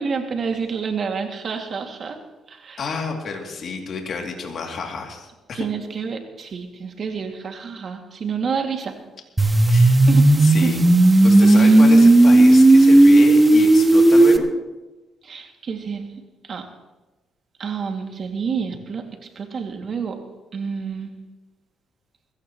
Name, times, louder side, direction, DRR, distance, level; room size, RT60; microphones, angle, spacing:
voice 1, 0.0-2.2 2.5-2.8 5.5-8.9 10.1-10.7 11.4-11.8 15.2-16.1 16.4-16.6 17.6-19.0 19.4-20.2 20.5-21.1, right 5 dB, 50° right, 3 dB, 2.3 m, -28 dB
voice 2, 2.8-5.6 9.7-10.0 10.4-10.8 11.2-14.5, left 4 dB, 60° left, 1 dB, 2.7 m, -30 dB
sound 1, 9.4-14.4, right 2 dB, 15° right, 1.3 m, -12 dB
22.0 x 15.5 x 3.1 m, 1.1 s
cardioid pair, 90°, 0 cm